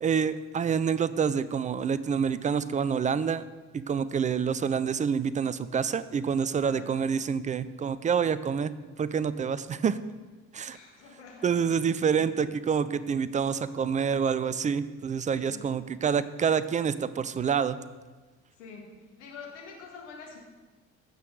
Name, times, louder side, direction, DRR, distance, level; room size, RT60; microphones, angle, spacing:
voice 1, 0.0-3.4 3.7-8.7 9.0-10.0 10.5-10.8 11.4-17.8, right 6 dB, 20° right, 15 dB, 0.5 m, -27 dB
voice 2, 10.7-11.7 12.1-12.5 15.3-15.7 18.6-18.9 19.2-20.4, left 5 dB, 75° left, -1 dB, 1.7 m, -46 dB
16.0 x 6.4 x 4.0 m, 1.3 s
figure-of-eight pair, 50°, 36 cm